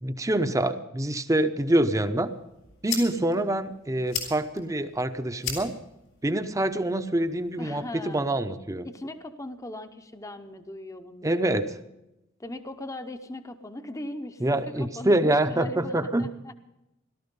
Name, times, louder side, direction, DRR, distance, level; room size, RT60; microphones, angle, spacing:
voice 1, 0.0-2.3 2.8-5.7 6.2-8.9 11.2-11.8 14.4-16.3, right 1 dB, 15° right, 10 dB, 0.7 m, -25 dB
sound 1, 2.2-8.2, left 6 dB, 90° left, 4.7 m, -39 dB
voice 2, 7.6-8.3 8.8-11.6 12.4-16.5, left 1 dB, 15° left, 8 dB, 0.7 m, -39 dB
17.5 x 13.0 x 5.3 m, 0.90 s
head